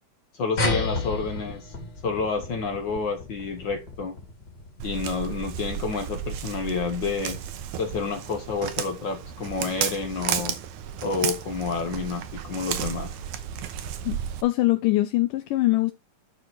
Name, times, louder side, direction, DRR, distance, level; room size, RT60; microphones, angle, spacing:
voice 1, 0.3-1.7 2.0-4.1 4.8-7.4 7.8-10.6 11.0-13.1, left 4 dB, 60° left, 1.1 m, -29 dB
sound 1, 0.6-5.5, left 2 dB, 35° left, 1.9 m, -32 dB
Walk footsteps, 4.8-14.4, right 9 dB, 70° right, 2.2 m, -33 dB
voice 2, 14.1-15.9, left 18 dB, 80° left, 2.2 m, -23 dB
11.5 x 4.2 x 4.5 m
omnidirectional pair, 4.0 m